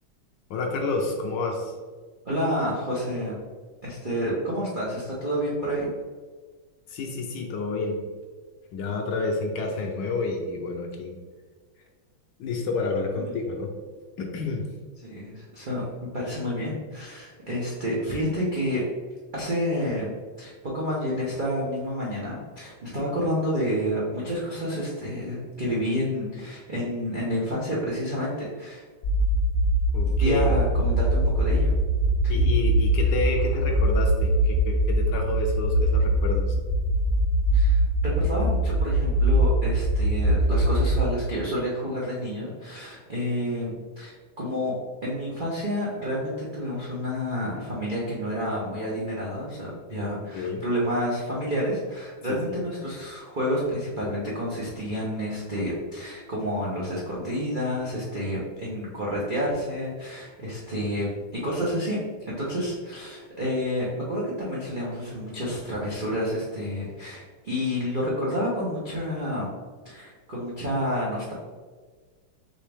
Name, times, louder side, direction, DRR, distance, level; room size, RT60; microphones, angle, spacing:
voice 1, 0.5-1.7 6.9-7.9 8.7-11.1 12.4-13.7 14.2-14.6 29.9-30.5 32.3-36.4 50.3-50.6 52.3-52.6, left 3 dB, 75° left, 1 dB, 1.1 m, -29 dB
voice 2, 2.2-3.4 3.8-5.9 13.1-13.3 15.0-18.8 19.3-28.8 30.2-31.7 32.2-32.3 37.5-44.7 45.0-61.1 61.3-62.0 62.3-69.5 69.8-71.3, equal, 80° right, -7 dB, 0.4 m, -29 dB
sound 1, 29.0-41.0, right 1 dB, 55° left, 0.9 m, -22 dB
4.5 x 3.4 x 3.4 m, 1.5 s
omnidirectional pair, 2.3 m